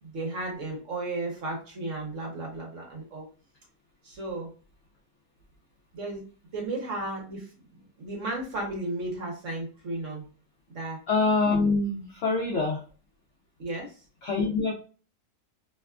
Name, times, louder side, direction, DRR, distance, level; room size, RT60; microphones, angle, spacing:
voice 1, 0.0-3.2 4.0-4.5 5.9-6.2 6.5-7.5 8.0-10.3 10.7-11.0 13.6-14.0, right 2 dB, 55° right, -1 dB, 1.0 m, -34 dB
voice 2, 11.1-12.8 14.2-14.7, left 3 dB, 90° left, -1 dB, 0.6 m, -25 dB
2.9 x 2.2 x 2.3 m, 0.38 s
omnidirectional pair, 1.9 m